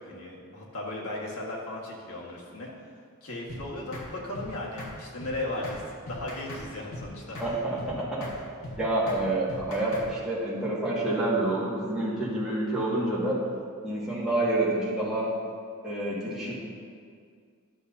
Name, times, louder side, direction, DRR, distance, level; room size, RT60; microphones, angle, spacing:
voice 1, 0.0-2.7 3.2-7.4, left 1 dB, 85° left, -4 dB, 1.7 m, -36 dB
sound 1, 3.5-3.6 3.9-4.1 4.3-4.5 4.8-4.9 5.2-5.3 5.6-5.8 6.1-6.6 6.9-7.1 7.3-7.5 7.8-7.9 8.2-8.4 8.6-8.8 9.1-9.2 9.5-10.1, left 1 dB, 65° left, 1.9 m, -39 dB
voice 2, 7.4-8.3 8.8-13.4 13.8-15.3 15.8-16.5, right 2 dB, 5° right, -9 dB, 1.9 m, -28 dB
11.5 x 6.8 x 2.8 m, 2.1 s
head